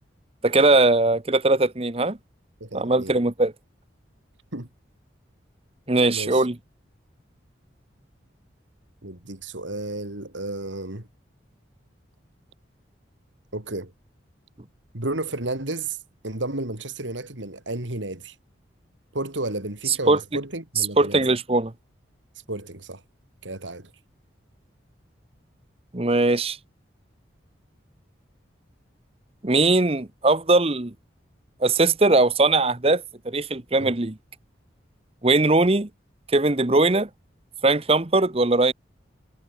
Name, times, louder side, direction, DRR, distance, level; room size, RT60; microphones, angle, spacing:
voice 1, 0.4-2.2 2.7-3.5 5.9-6.6 19.9-20.2 21.0-21.7 25.9-26.6 29.4-30.9 31.6-34.1 35.2-35.9 36.3-37.1 37.6-38.7, right 2 dB, 30° right, 1.0 m, -20 dB
voice 2, 2.6-3.1 4.5-4.7 6.1-6.5 9.0-11.1 13.5-13.9 14.9-16.0 16.2-18.3 19.1-21.2 22.5-23.0 23.4-23.9 33.8-33.9, right 2 dB, 80° right, 3.4 m, -32 dB
head